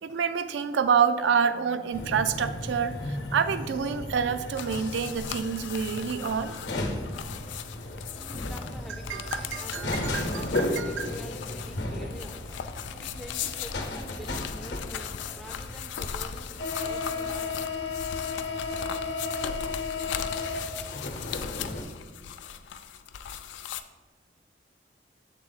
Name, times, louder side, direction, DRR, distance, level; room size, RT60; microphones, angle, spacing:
voice 1, 0.0-6.6 9.1-11.1, right 6 dB, 85° right, 11 dB, 0.4 m, -28 dB
sound 1, 1.1-15.4, left 1 dB, 40° left, 0.6 m, -52 dB
sound 2, 1.9-21.8, left 2 dB, 70° left, 0.8 m, -34 dB
sound 3, 4.6-23.8, left 8 dB, 90° left, 0.3 m, -38 dB
voice 2, 8.1-12.5 13.0-17.6, equal, ahead, 4 dB, 0.3 m, -46 dB
7.4 x 3.7 x 3.9 m, 1.3 s
head